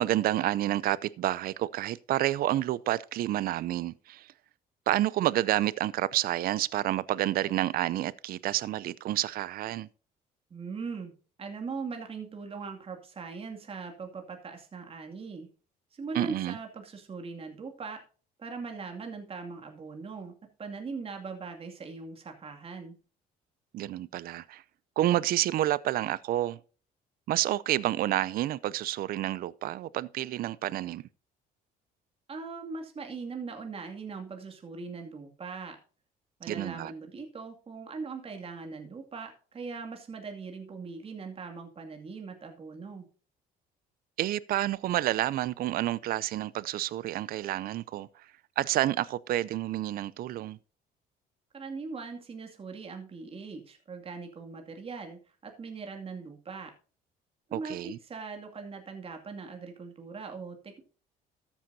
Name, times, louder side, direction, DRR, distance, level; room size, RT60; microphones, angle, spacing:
voice 1, 0.0-4.3 4.9-9.9 16.1-16.6 23.7-24.6 25.0-26.6 27.3-31.0 36.5-36.9 44.2-48.3 48.6-50.6 57.5-58.0, right 14 dB, 60° right, 0.5 m, -29 dB
voice 2, 10.5-11.1 11.4-15.5 15.9-18.0 18.4-20.3 20.6-23.0 32.3-35.8 36.4-43.0 51.5-56.7 57.5-60.8, right 4 dB, 35° right, 2.5 m, -40 dB
13.5 x 10.0 x 2.8 m
cardioid pair, 110°, 17 cm